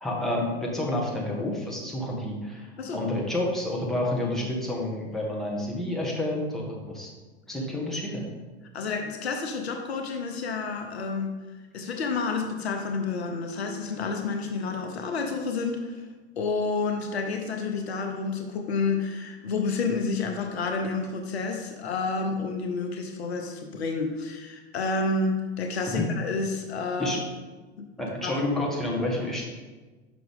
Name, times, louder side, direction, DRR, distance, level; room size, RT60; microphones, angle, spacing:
voice 1, 0.0-7.1 7.5-8.3 25.9-26.0 27.0-27.2 28.0-29.4, left 1 dB, ahead, -4 dB, 1.5 m, -29 dB
voice 2, 8.7-11.3 11.7-16.0 16.4-27.2 27.8-27.9 28.2-28.4, left 4 dB, 70° left, 4 dB, 0.9 m, -29 dB
6.0 x 5.8 x 3.7 m, 1.3 s
figure-of-eight pair, 90°, 33 cm